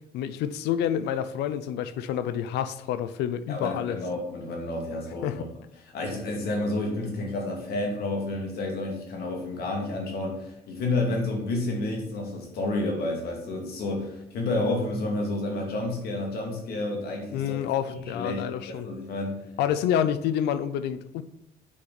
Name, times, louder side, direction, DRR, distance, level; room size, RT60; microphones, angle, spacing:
voice 1, 0.1-4.0 5.2-5.5 17.3-18.9 19.6-21.2, left 9 dB, 85° left, 13 dB, 0.5 m, -28 dB
voice 2, 3.5-5.4 5.9-17.5 17.9-19.4, left 2 dB, 70° left, 0 dB, 2.6 m, -30 dB
8.5 x 5.1 x 4.1 m, 0.81 s
cardioid pair, 110°, 17 cm